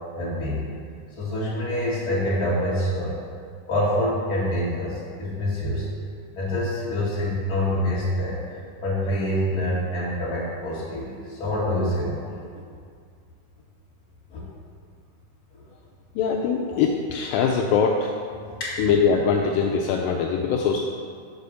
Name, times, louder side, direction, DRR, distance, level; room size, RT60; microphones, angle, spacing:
voice 1, 0.1-0.7 1.1-3.1 3.7-5.9 6.3-12.2 14.3-14.4 15.5-15.6 18.6-18.8, left 1 dB, 35° left, -8 dB, 1.7 m, -26 dB
voice 2, 16.2-18.1 18.8-20.8, left 6 dB, 90° left, 0 dB, 1.9 m, -22 dB
6.6 x 4.9 x 6.8 m, 2.2 s
omnidirectional pair, 4.6 m